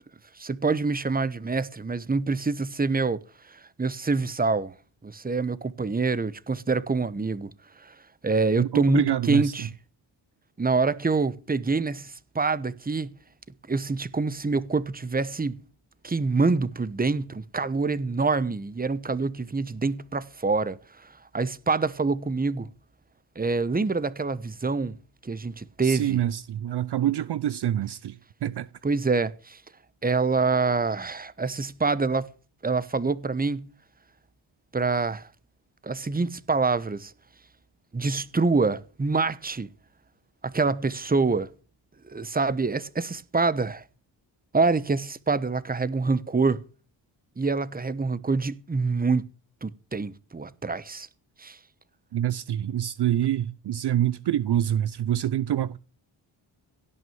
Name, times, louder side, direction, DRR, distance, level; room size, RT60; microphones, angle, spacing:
voice 1, 0.4-3.2 3.5-4.7 5.0-7.5 7.8-7.9 8.2-9.7 10.6-13.1 13.7-15.6 16.0-22.7 23.4-26.2 28.8-29.6 30.0-32.3 32.6-33.7 34.7-35.3 35.8-37.1 37.9-39.7 40.4-41.5 42.0-43.8 44.5-46.6 47.4-49.3 49.6-51.1 51.4-51.6, right 4 dB, 20° right, 1.0 m, -26 dB
voice 2, 8.6-9.5 25.8-28.7 52.1-55.8, right 11 dB, 55° right, 0.6 m, -26 dB
16.5 x 6.3 x 9.1 m
cardioid pair, 60°, 48 cm